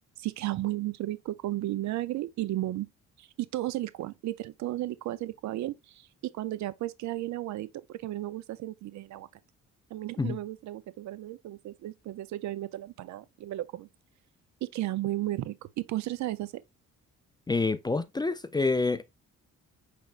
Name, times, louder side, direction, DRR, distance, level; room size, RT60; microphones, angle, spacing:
voice 1, 0.2-2.9 3.2-6.1 6.3-9.3 9.9-13.9 14.6-16.6, right 15 dB, 70° right, 0.5 m, -34 dB
voice 2, 17.5-19.0, left 3 dB, 15° left, 0.3 m, -27 dB
6.0 x 3.3 x 2.4 m
cardioid pair, 90°, 30 cm